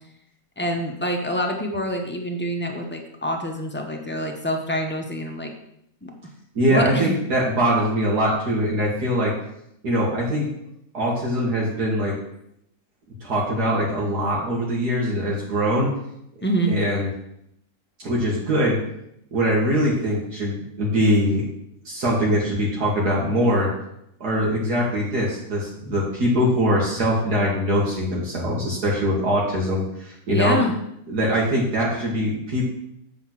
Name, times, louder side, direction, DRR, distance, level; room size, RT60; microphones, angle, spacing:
voice 1, 0.6-5.5 6.0-6.1 6.7-7.2 16.4-16.8 30.3-30.7, equal, 15° left, 2 dB, 0.4 m, -26 dB
voice 2, 6.6-9.3 9.8-10.5 10.9-12.1 13.2-15.9 16.4-17.1 18.0-18.8 19.3-21.4 21.8-23.7 24.2-30.6 31.1-32.7, equal, 70° right, -4 dB, 2.1 m, -22 dB
7.7 x 4.3 x 5.9 m, 0.76 s
omnidirectional pair, 1.7 m